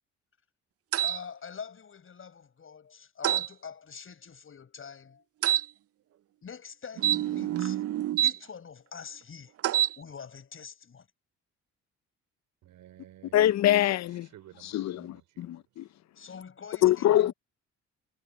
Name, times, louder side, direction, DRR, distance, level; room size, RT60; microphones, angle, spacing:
sound 1, 0.9-1.2 3.2-3.5 5.4-5.7 7.0-8.4 9.6-10.0, right 12 dB, 50° right, 0.5 m, -26 dB
voice 1, 1.0-5.2 6.4-7.8 8.2-9.5 10.0-11.1 16.2-17.3, left 6 dB, 45° left, 7.6 m, -45 dB
voice 2, 12.6-13.5 14.0-16.0 16.8-16.9, right 13 dB, 85° right, 4.9 m, -55 dB
voice 3, 13.3-14.3 14.7-15.8 16.8-17.3, left 13 dB, 65° left, 0.6 m, -24 dB
cardioid pair, 90°, 30 cm